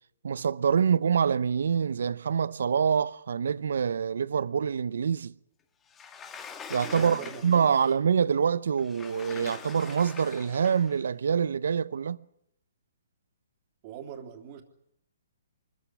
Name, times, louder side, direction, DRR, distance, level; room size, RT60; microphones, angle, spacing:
voice 1, 0.2-5.3 6.7-12.2, right 7 dB, 70° right, 0.7 m, -26 dB
Sliding door, 5.9-7.9 8.8-11.0, left 6 dB, 15° left, 1.9 m, -43 dB
voice 2, 7.0-7.9 13.8-14.6, right 8 dB, 40° right, 3.2 m, -42 dB
24.5 x 14.5 x 9.7 m
hypercardioid pair, 140°, 0 cm